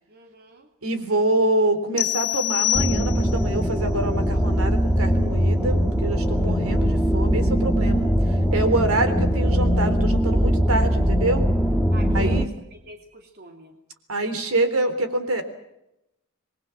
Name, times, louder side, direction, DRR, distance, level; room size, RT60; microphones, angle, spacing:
voice 1, 0.1-0.7 11.9-12.4 12.9-13.8, right 1 dB, 45° right, 3 dB, 2.9 m, -44 dB
voice 2, 0.8-8.1 8.5-11.5 12.1-12.5 14.1-15.4, right 2 dB, 75° right, 9 dB, 3.7 m, -25 dB
sound 1, 2.0-3.5, left 16 dB, 75° left, 1.1 m, -25 dB
sound 2, 2.7-12.5, equal, ahead, 1.8 m, -21 dB
28.0 x 22.0 x 6.0 m, 0.85 s
head